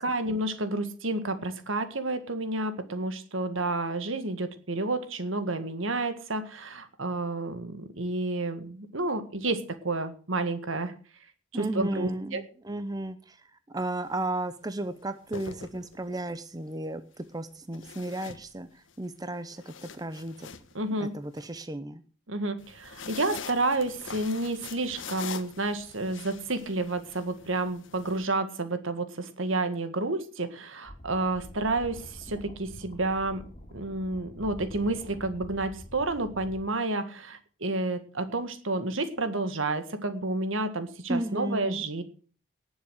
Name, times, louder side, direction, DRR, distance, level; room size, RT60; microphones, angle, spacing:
voice 1, 0.0-10.9 11.5-12.4 20.7-21.1 22.3-33.4 33.7-42.0, right 2 dB, 75° right, 10 dB, 1.8 m, -30 dB
voice 2, 11.5-13.4 13.7-20.5 21.0-22.0 41.1-41.8, right 1 dB, 20° right, 11 dB, 0.7 m, -34 dB
sound 1, 13.9-14.2 15.1-16.3 17.7-18.9 19.4-21.5 22.6-28.3, left 6 dB, 65° left, 1.1 m, -44 dB
sound 2, 30.8-36.7, equal, 25° left, 2.8 m, -46 dB
18.5 x 7.2 x 6.4 m, 0.41 s
head